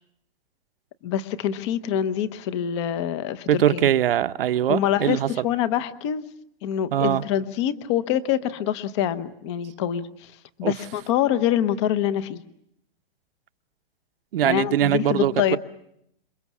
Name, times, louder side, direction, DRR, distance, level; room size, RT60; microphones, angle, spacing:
voice 1, 1.0-3.9 4.7-6.3 6.6-10.3 10.6-12.4 14.4-15.6, left 10 dB, 30° left, 0.9 m, -25 dB
voice 2, 3.5-5.3 6.9-7.2 10.6-10.7 14.3-15.6, right 11 dB, 70° right, 1.0 m, -22 dB
27.5 x 23.5 x 7.2 m
hypercardioid pair, 170°, 29 cm